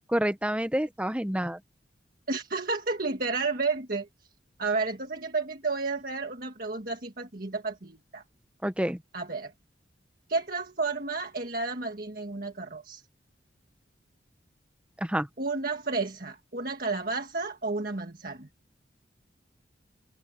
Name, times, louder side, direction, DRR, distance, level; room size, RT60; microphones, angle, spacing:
voice 1, 0.1-1.6 8.6-9.0 15.0-15.3, equal, 5° right, 0.9 m, -28 dB
voice 2, 2.3-4.1 4.6-8.2 9.1-9.5 10.3-13.0 15.4-18.5, right 3 dB, 50° right, 1.7 m, -31 dB
head